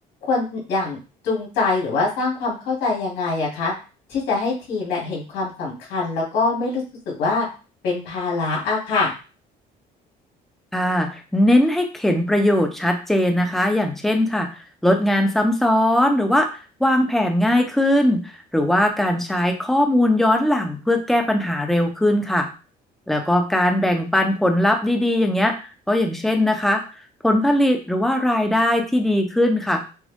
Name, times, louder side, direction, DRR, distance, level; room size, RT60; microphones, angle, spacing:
voice 1, 0.3-1.0 1.2-3.7 4.1-7.5 7.8-9.1, left 3 dB, 80° left, -4 dB, 2.6 m, -24 dB
voice 2, 10.7-14.5 14.8-16.5 16.8-22.5 23.1-25.6 25.9-26.8 27.2-29.8, left 1 dB, ahead, 4 dB, 0.8 m, -19 dB
6.3 x 2.1 x 3.6 m, 0.33 s
cardioid pair, 110°, 17 cm